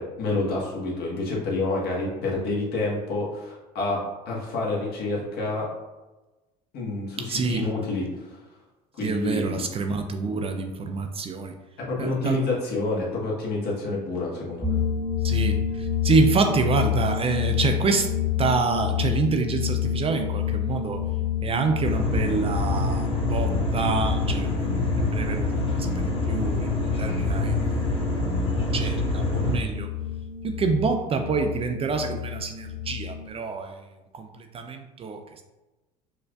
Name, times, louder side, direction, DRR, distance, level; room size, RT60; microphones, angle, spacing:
voice 1, 0.0-4.0 4.2-5.6 6.7-8.4 8.9-9.7 11.9-14.8, left 2 dB, 60° left, -4 dB, 1.3 m, -28 dB
voice 2, 7.2-7.6 9.0-11.5 12.0-12.4 15.2-18.1 18.4-21.0 21.4-24.6 25.1-27.7 28.7-29.9 30.4-33.8 34.1-35.2, right 4 dB, 30° right, 5 dB, 0.4 m, -27 dB
sound 1, 14.6-33.3, left 9 dB, ahead, 0.9 m, -29 dB
sound 2, 21.8-29.6, left 1 dB, 30° left, 1.1 m, -26 dB
4.4 x 2.4 x 2.3 m, 1.1 s
hypercardioid pair, 75°, 19 cm